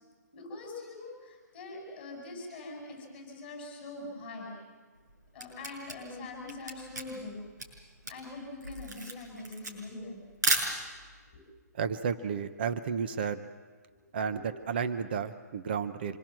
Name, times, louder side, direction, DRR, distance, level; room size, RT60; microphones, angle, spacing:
voice 1, 0.3-4.5 5.3-7.4 8.1-10.2 11.3-11.4 13.9-14.5, left 2 dB, 10° left, -1 dB, 8.0 m, -43 dB
Camera, 5.0-11.2, right 2 dB, 85° right, 6.5 m, -34 dB
voice 2, 11.7-13.4 14.1-14.4 14.7-16.2, right 6 dB, 35° right, 10 dB, 0.9 m, -32 dB
26.5 x 22.5 x 7.6 m, 1.4 s
hypercardioid pair, 175°, 9 cm